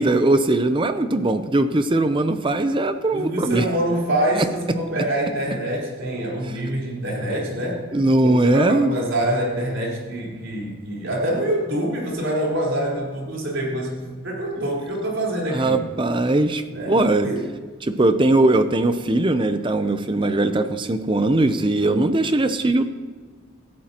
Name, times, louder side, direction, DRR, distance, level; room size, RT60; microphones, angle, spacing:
voice 1, 0.0-3.7 4.4-4.5 7.9-8.9 15.5-17.3 17.8-22.9, right 2 dB, 25° right, 10 dB, 0.5 m, -20 dB
voice 2, 3.1-7.8 8.2-15.8 16.7-17.0 17.2-17.4, right 1 dB, 70° right, -3 dB, 4.0 m, -25 dB
17.5 x 13.0 x 2.9 m, 1.5 s
head